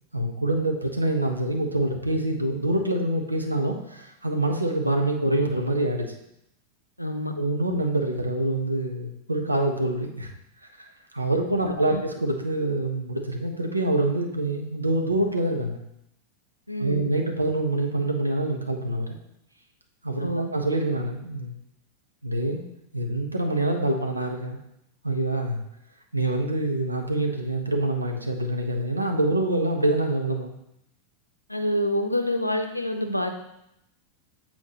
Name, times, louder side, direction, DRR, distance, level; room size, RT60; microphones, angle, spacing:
voice 1, 0.1-6.1 7.4-10.3 11.1-15.8 16.8-19.1 20.0-21.5 22.2-22.6 22.9-24.6 25.0-25.6 26.1-30.5, right 1 dB, 85° right, 3 dB, 0.8 m, -25 dB
voice 2, 7.0-7.3 11.9-12.0 16.7-17.0 20.2-20.5 31.5-33.3, left 1 dB, 90° left, 6 dB, 0.6 m, -27 dB
8.1 x 4.3 x 2.9 m, 0.81 s
figure-of-eight pair, 90°, 0 cm